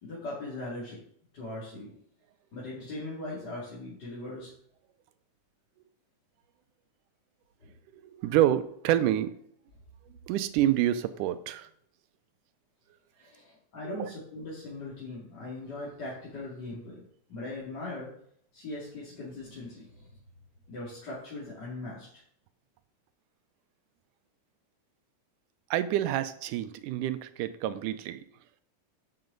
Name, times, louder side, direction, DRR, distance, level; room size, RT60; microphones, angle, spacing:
voice 1, 0.0-1.0 1.3-1.9 2.5-4.5 7.6-7.7 13.2-18.1 18.5-20.1 20.7-22.2, left 2 dB, 35° left, -8 dB, 2.6 m, -40 dB
voice 2, 7.9-9.3 10.3-11.7 13.9-14.1 25.7-28.2, right 12 dB, 90° right, 12 dB, 2.2 m, -28 dB
7.8 x 7.6 x 3.9 m, 0.65 s
omnidirectional pair, 3.6 m